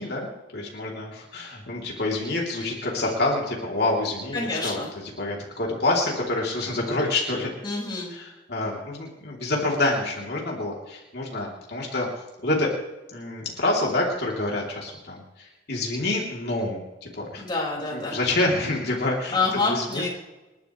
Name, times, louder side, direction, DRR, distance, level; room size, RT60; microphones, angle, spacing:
voice 1, 0.0-7.5 8.1-12.1 12.4-12.7 13.1-17.4 17.9-20.1, left 2 dB, 60° left, -3 dB, 3.0 m, -27 dB
voice 2, 4.3-4.9 7.6-8.1 17.4-18.2 19.3-20.1, left 3 dB, 25° left, -3 dB, 5.0 m, -27 dB
29.0 x 12.0 x 3.2 m, 1.1 s
head